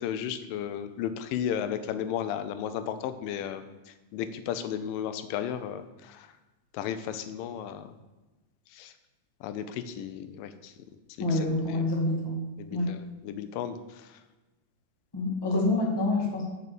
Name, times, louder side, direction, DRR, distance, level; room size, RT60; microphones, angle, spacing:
voice 1, 0.0-6.3 6.7-7.9 8.7-8.9 9.4-10.7 11.2-11.4 11.7-11.8 12.6-14.2, left 9 dB, 90° left, 11 dB, 2.4 m, -34 dB
voice 2, 11.2-12.4 12.7-12.9 15.1-16.4, left 2 dB, 15° left, -2 dB, 0.8 m, -27 dB
6.8 x 6.2 x 6.7 m, 1.2 s
omnidirectional pair, 3.8 m